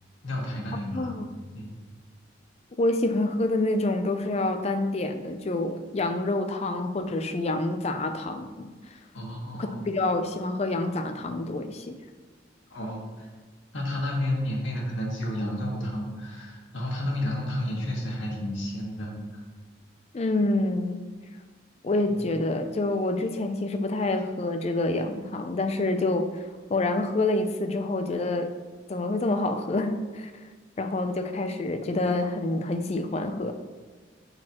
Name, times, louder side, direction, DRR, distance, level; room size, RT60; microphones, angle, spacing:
voice 1, 0.2-1.1 1.5-1.7 9.1-9.8 12.7-13.3 13.7-19.4 22.1-22.2, left 1 dB, 80° left, -3 dB, 1.7 m, -31 dB
voice 2, 0.9-1.6 2.8-9.0 9.5-12.0 20.1-21.0 21.8-28.5 28.9-30.4 30.8-33.5, left 2 dB, 35° left, 7 dB, 0.4 m, -27 dB
6.4 x 6.2 x 2.9 m, 1.3 s
head